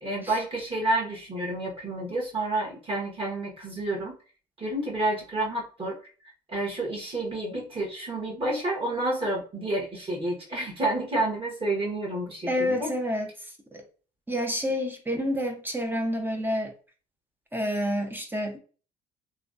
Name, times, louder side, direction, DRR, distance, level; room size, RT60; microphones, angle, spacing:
voice 1, 0.0-4.1 4.6-6.0 6.5-12.9, right 2 dB, 30° right, 1.4 m, -29 dB
voice 2, 12.5-13.3 13.7-13.8 14.3-16.7 17.5-18.6, equal, 10° right, 0.5 m, -28 dB
3.2 x 2.2 x 2.5 m
cardioid pair, 110°, 17 cm